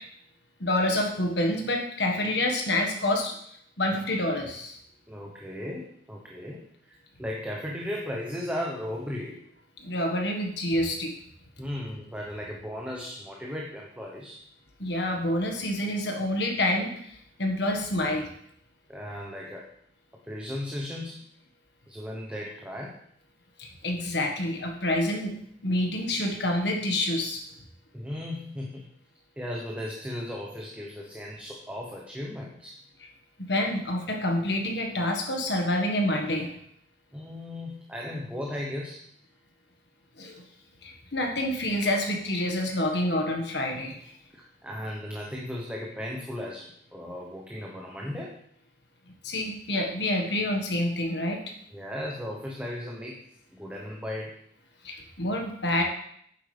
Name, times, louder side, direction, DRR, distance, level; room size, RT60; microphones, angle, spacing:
voice 1, 0.6-3.3 3.8-4.8 9.8-11.1 14.8-18.3 23.6-25.4 25.6-27.4 33.4-36.5 40.2-40.4 40.8-44.0 49.2-51.6 54.8-55.8, left 1 dB, 65° left, 2 dB, 1.6 m, -27 dB
voice 2, 5.1-9.4 11.6-14.4 18.9-19.7 20.2-21.2 21.9-23.0 27.9-28.8 29.4-32.8 37.1-39.0 44.3-48.4 51.7-53.2 53.5-54.3, left 1 dB, 5° right, -2 dB, 1.0 m, -36 dB
9.9 x 7.7 x 3.4 m, 0.68 s
head